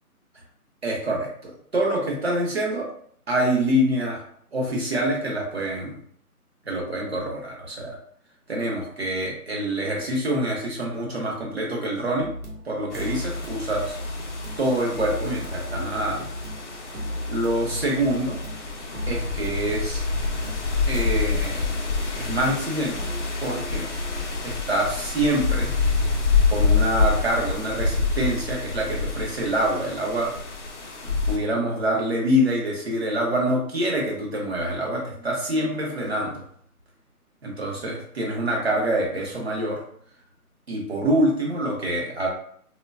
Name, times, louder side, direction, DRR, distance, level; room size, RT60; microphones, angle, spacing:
voice 1, 0.8-2.9 3.3-4.2 4.5-6.0 6.7-8.0 8.5-12.3 12.6-14.0 14.6-16.3 17.3-18.4 19.1-20.0 20.9-21.7 22.2-23.1 23.4-23.9 24.4-25.7 26.5-30.3 31.0-36.4 37.4-39.8 40.7-42.3, right 1 dB, 45° right, -2 dB, 0.8 m, -26 dB
sound 1, 12.2-24.4, left 1 dB, 75° right, 0.8 m, -34 dB
sound 2, 12.9-31.4, left 4 dB, 50° left, 0.5 m, -27 dB
3.3 x 2.2 x 2.2 m, 0.62 s
figure-of-eight pair, 160°, 46 cm